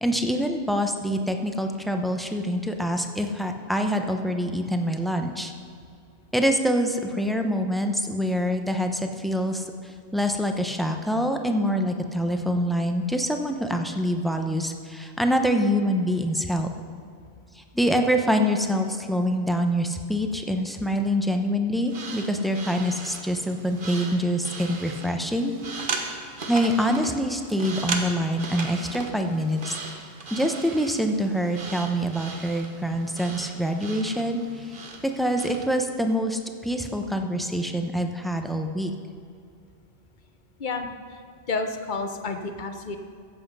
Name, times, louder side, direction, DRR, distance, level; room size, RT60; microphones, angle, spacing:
voice 1, 0.0-5.5 6.3-16.7 17.6-25.6 26.5-34.7 35.0-38.9, equal, ahead, 5 dB, 0.6 m, -25 dB
sound 1, 21.8-35.7, right 3 dB, 55° right, 1.2 m, -37 dB
voice 2, 40.6-41.2 41.5-43.0, left 3 dB, 50° left, 6 dB, 1.0 m, -30 dB
14.5 x 7.8 x 5.4 m, 2.4 s
omnidirectional pair, 1.1 m